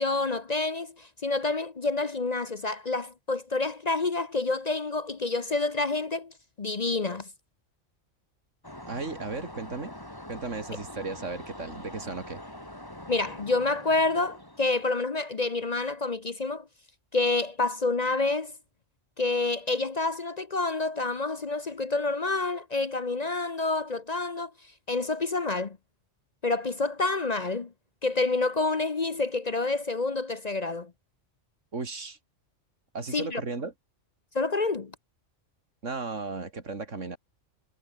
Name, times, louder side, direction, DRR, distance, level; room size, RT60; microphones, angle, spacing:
voice 1, 0.0-7.3 13.1-16.6 17.1-18.5 19.2-24.5 24.9-25.8 26.4-27.7 28.0-30.9 33.1-33.4 34.3-34.9, left 3 dB, 35° left, 0.9 m, -28 dB
sound 1, 8.6-15.0, left 1 dB, 15° left, 3.9 m, -44 dB
voice 2, 8.9-9.9 10.3-12.4 31.7-32.2 32.9-33.7 35.8-37.2, right 3 dB, 80° right, 3.1 m, -35 dB
omnidirectional pair, 1.3 m